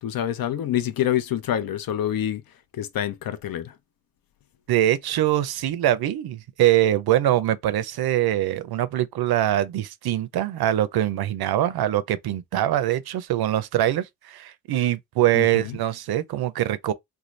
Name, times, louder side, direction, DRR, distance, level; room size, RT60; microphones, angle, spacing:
voice 1, 0.0-2.4 2.7-3.7 15.3-15.8, left 11 dB, 65° left, 0.5 m, -26 dB
voice 2, 4.7-16.9, right 13 dB, 80° right, 0.5 m, -23 dB
2.6 x 2.3 x 3.1 m
cardioid pair, 105°, 37 cm